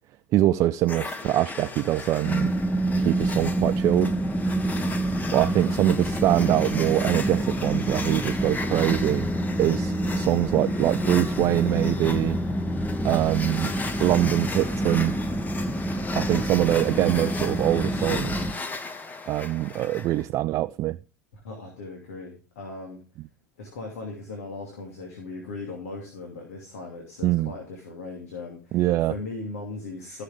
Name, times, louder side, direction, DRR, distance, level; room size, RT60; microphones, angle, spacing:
voice 1, 0.3-2.5 3.0-4.1 5.3-9.3 9.6-12.4 13.0-13.7 14.0-15.2 16.2-18.5 19.3-21.0 27.2-27.5 28.7-29.1, right 14 dB, 40° right, 0.4 m, -23 dB
sound 1, 0.9-20.2, left 3 dB, 20° left, 1.5 m, -36 dB
sound 2, 2.2-18.5, right 1 dB, ahead, 0.9 m, -27 dB
voice 2, 21.3-23.0 23.6-30.2, left 3 dB, 65° left, 2.8 m, -38 dB
14.5 x 6.7 x 3.6 m
figure-of-eight pair, 75°, 8 cm